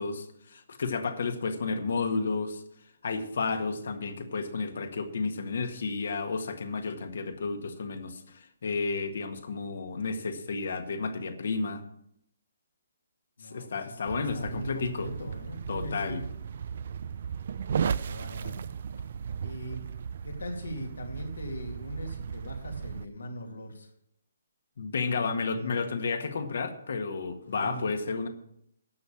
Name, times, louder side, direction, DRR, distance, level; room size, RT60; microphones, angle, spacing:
voice 1, 0.0-2.6 3.0-11.8 13.5-15.1 15.7-16.2 24.8-28.3, left 4 dB, 65° left, 7 dB, 1.7 m, -32 dB
voice 2, 13.4-16.3 17.8-18.7 19.4-19.9 20.2-23.9 25.1-25.8 27.4-27.9, equal, 85° left, 2 dB, 2.7 m, -40 dB
sound 1, 14.0-23.1, right 7 dB, 55° right, 0.5 m, -36 dB
11.5 x 6.9 x 7.3 m, 0.74 s
hypercardioid pair, 145°, 0 cm